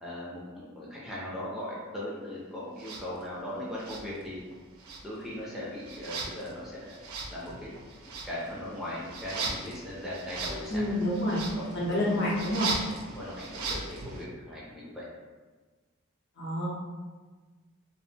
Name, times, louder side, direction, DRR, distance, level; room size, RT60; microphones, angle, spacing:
voice 1, 0.0-4.4 5.0-7.0 7.3-7.7 8.2-11.2 11.6-12.2 12.9-15.0, left 1 dB, ahead, -7 dB, 0.4 m, -39 dB
sound 1, 2.8-3.0 3.8-4.5 4.8-14.2, right 3 dB, 85° right, 0.4 m, -39 dB
voice 2, 10.7-11.4 11.7-12.7 16.4-16.7, left 1 dB, 55° left, -5 dB, 0.7 m, -28 dB
2.4 x 2.0 x 3.2 m, 1.3 s
head